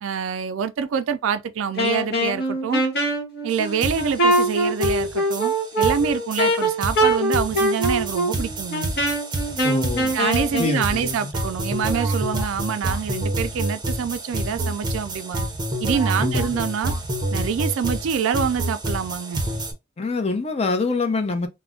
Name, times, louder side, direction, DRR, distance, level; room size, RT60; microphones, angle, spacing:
voice 1, 0.0-2.8 3.4-8.9 10.1-15.5 15.8-16.9 17.3-19.4, right 7 dB, 70° right, 0.3 m, -26 dB
Wind instrument woodwind instrument, 1.8-10.8, right 1 dB, 55° left, 1.0 m, -23 dB
sound 1, 3.5-3.6 3.8-19.7, right 1 dB, 20° right, 0.6 m, -28 dB
voice 2, 9.6-10.1 10.6-11.3 16.2-16.6 20.0-21.5, left 3 dB, 30° left, 0.5 m, -25 dB
2.3 x 2.1 x 3.6 m
head